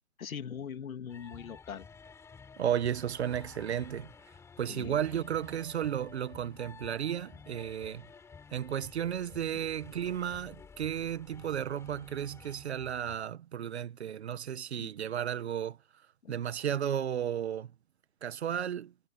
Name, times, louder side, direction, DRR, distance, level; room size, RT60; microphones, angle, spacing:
voice 1, 0.2-1.9 4.7-5.0 14.8-14.9 16.2-16.3, left 7 dB, 75° left, 2.5 m, -41 dB
sound 1, 1.1-13.2, left 5 dB, 5° left, 5.7 m, -52 dB
voice 2, 2.6-4.1 4.6-8.1 8.5-15.8 16.3-17.7 18.2-18.9, right 9 dB, 50° right, 1.6 m, -33 dB
hypercardioid pair, 165°, 42 cm